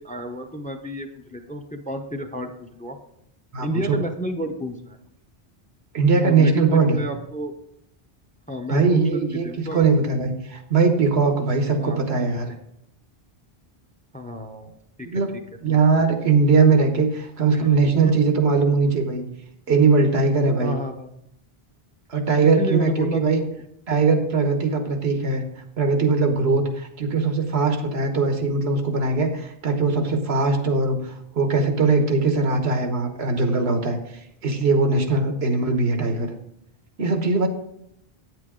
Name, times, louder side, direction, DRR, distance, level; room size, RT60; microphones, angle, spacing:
voice 1, 0.0-3.0 3.6-5.0 6.2-7.5 8.5-10.2 11.8-12.0 14.1-14.7 15.0-15.4 15.7-16.1 17.5-17.8 18.0-18.1 20.6-21.1 22.4-23.4 35.6-35.7, equal, 10° left, 7 dB, 0.5 m, -31 dB
voice 2, 3.5-4.0 5.9-7.0 8.7-12.5 15.0-15.3 15.6-19.2 19.7-20.8 22.1-23.4 23.9-25.4 25.8-34.0 34.4-36.3 37.0-37.5, right 4 dB, 85° right, 5 dB, 1.4 m, -20 dB
9.1 x 7.7 x 3.7 m, 0.77 s
omnidirectional pair, 1.0 m